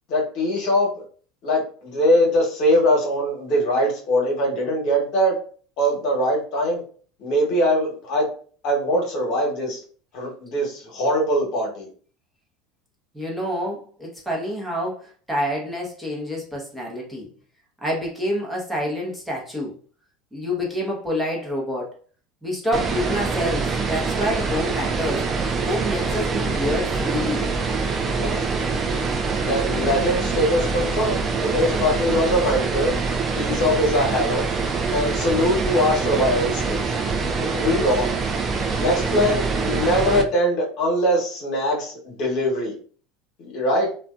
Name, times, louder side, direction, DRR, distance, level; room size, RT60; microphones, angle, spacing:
voice 1, 0.1-1.0 1.4-5.4 5.8-6.8 7.2-8.3 8.6-9.8 10.1-11.9 28.1-28.4 29.4-32.9 33.3-34.5 34.9-36.9 37.4-38.1 38.8-42.7 43.4-43.9, equal, 60° left, -1 dB, 1.0 m, -22 dB
voice 2, 13.1-17.3 17.8-19.8 20.3-22.0 22.4-25.3 25.6-27.5, left 1 dB, 5° right, -3 dB, 0.9 m, -27 dB
sound 1, 22.7-40.2, right 4 dB, 30° right, 0.4 m, -24 dB
2.5 x 2.2 x 2.3 m, 0.43 s
hypercardioid pair, 95°, 0 cm